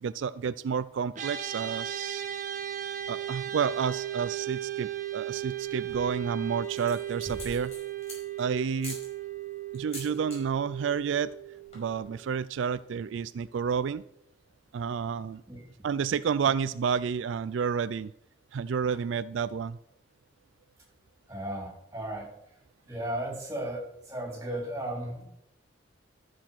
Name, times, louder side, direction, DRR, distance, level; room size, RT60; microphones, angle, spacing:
voice 1, 0.0-2.2 3.1-7.7 8.4-9.0 9.7-11.3 11.7-14.0 14.7-15.4 15.8-18.1 18.5-19.8, right 6 dB, 85° right, 15 dB, 0.4 m, -30 dB
sound 1, 1.1-12.6, right 11 dB, 40° right, 1.4 m, -36 dB
sound 2, 5.7-6.2 6.6-8.4 8.8-9.1 9.7-10.4 10.7-11.0 11.2-11.3 11.6-12.0, left 1 dB, 35° left, 5.0 m, -44 dB
voice 2, 21.3-22.3 22.9-25.2, right 1 dB, 15° right, -1 dB, 3.8 m, -35 dB
13.0 x 6.4 x 5.9 m, 0.78 s
head